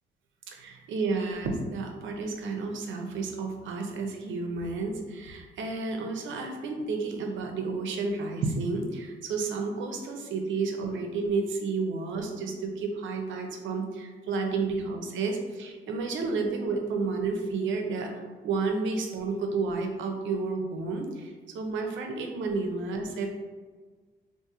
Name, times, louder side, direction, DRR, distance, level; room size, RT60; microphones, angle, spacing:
voice 1, 0.5-18.1 18.4-23.4, right 4 dB, 75° right, 3 dB, 0.6 m, -31 dB
3.6 x 2.6 x 2.9 m, 1.4 s
cardioid pair, 90°, 20 cm